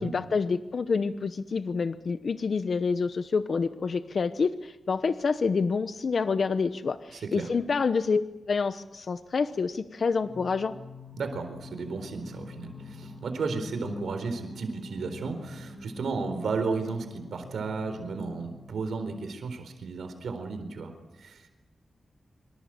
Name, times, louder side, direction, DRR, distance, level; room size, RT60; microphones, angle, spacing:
voice 1, 0.0-10.7, left 5 dB, 50° left, 11 dB, 0.9 m, -28 dB
voice 2, 7.1-7.5 11.2-20.9 21.2-21.5, right 4 dB, 85° right, 7 dB, 4.2 m, -33 dB
Singing, 10.2-19.1, left 3 dB, 10° left, 5.3 m, -45 dB
26.0 x 25.5 x 7.7 m, 0.98 s
wide cardioid pair, 135°, 0 cm